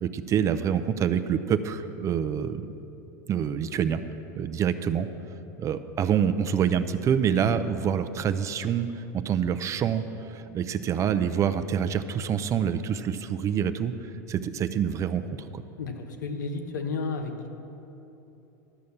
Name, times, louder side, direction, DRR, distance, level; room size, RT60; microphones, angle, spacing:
voice 1, 0.0-2.7 3.3-4.0 4.4-5.1 5.6-15.6, right 8 dB, 30° right, 10 dB, 0.5 m, -26 dB
voice 2, 15.8-17.5, left 4 dB, 85° left, 5 dB, 1.1 m, -32 dB
12.0 x 6.4 x 7.1 m, 2.9 s
hypercardioid pair, 115°, 10 cm